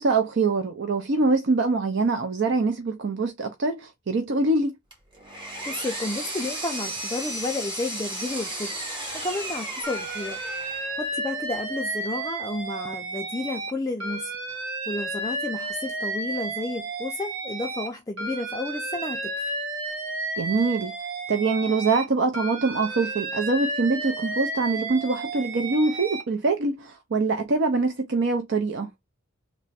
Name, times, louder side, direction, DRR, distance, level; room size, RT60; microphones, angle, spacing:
voice 1, 0.0-4.7 20.4-20.9 21.3-28.9, right 3 dB, 55° right, 0.5 m, -24 dB
Power tool, 4.9-11.0, right 1 dB, 20° right, 1.2 m, -34 dB
voice 2, 5.7-10.4 11.0-14.6 14.9-19.3, left 2 dB, 15° left, 0.4 m, -32 dB
Alarm, 9.8-13.7 14.0-17.9 18.2-22.0 22.3-26.2, right 2 dB, 75° right, 1.1 m, -32 dB
3.3 x 2.1 x 4.1 m
head